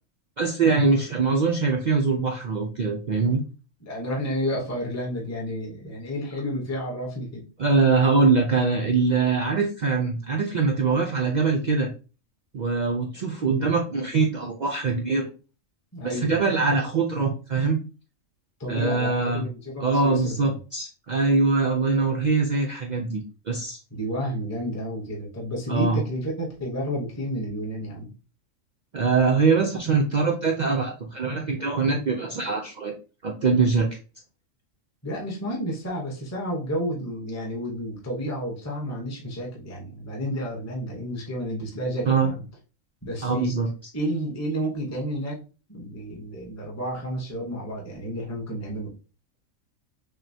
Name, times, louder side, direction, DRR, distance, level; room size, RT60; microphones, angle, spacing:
voice 1, 0.4-3.4 7.6-11.9 12.5-15.3 16.0-17.8 18.7-19.5 19.8-23.8 25.7-26.0 28.9-32.9 33.2-33.9 42.1-42.3 43.2-43.7, right 4 dB, 70° right, 1 dB, 0.4 m, -23 dB
voice 2, 3.8-7.5 15.9-16.6 18.6-20.5 23.9-28.1 35.0-42.4 43.0-43.5 43.9-45.4 45.7-48.9, equal, 15° left, -2 dB, 0.8 m, -31 dB
6.3 x 2.1 x 2.7 m, 0.34 s
omnidirectional pair, 1.4 m